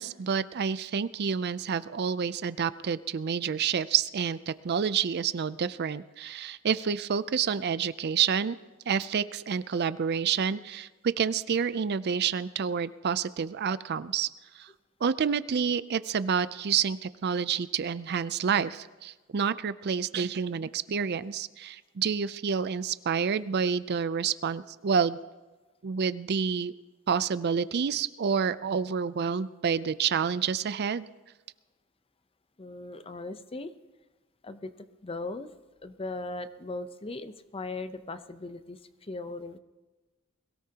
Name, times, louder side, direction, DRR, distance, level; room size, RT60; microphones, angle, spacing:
voice 1, 0.0-8.6 8.9-14.3 14.6-14.7 15.0-25.2 25.8-26.7 27.1-31.1, right 6 dB, 50° right, 15 dB, 0.4 m, -28 dB
voice 2, 32.6-33.7 34.4-34.7 35.0-35.5 35.8-39.6, left 2 dB, 25° left, 11 dB, 0.7 m, -38 dB
22.5 x 17.0 x 2.9 m, 1.2 s
head